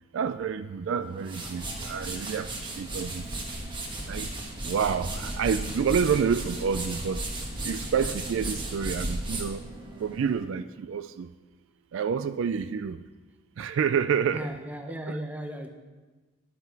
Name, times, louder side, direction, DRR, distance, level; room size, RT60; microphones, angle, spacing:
voice 1, 0.1-3.3 4.1-4.4 4.6-7.3 7.6-9.6 10.0-11.3 11.9-13.0 13.6-14.5 15.1-15.2, right 6 dB, 60° right, 12 dB, 0.3 m, -28 dB
sound 1, 1.0-10.4, right 1 dB, 20° right, 1.2 m, -35 dB
voice 2, 14.3-15.7, right 1 dB, 5° right, 5 dB, 0.7 m, -35 dB
9.9 x 7.9 x 4.6 m, 1.3 s
head